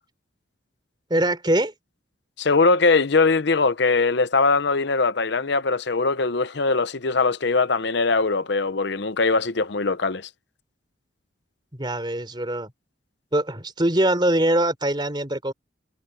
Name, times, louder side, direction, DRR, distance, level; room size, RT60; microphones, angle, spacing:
voice 1, 1.1-1.7 11.7-12.7 13.3-15.5, right 1 dB, 25° right, 3.7 m, -23 dB
voice 2, 2.4-10.3, left 3 dB, 60° left, 0.8 m, -21 dB
head